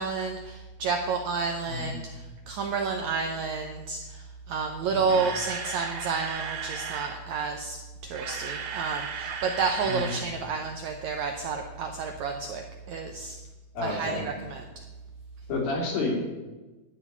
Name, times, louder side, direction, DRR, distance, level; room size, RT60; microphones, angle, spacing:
voice 1, 0.0-13.4 13.8-14.6, right 5 dB, 85° right, 4 dB, 1.6 m, -30 dB
Camera, 4.8-7.2 8.0-10.2 10.5-10.7 11.1-11.2, right 6 dB, 65° right, 2.7 m, -36 dB
voice 2, 4.9-5.2 9.8-10.1 13.7-14.3 15.5-16.2, left 2 dB, 70° left, -1 dB, 4.6 m, -30 dB
12.0 x 6.0 x 9.2 m, 1.2 s
omnidirectional pair, 4.4 m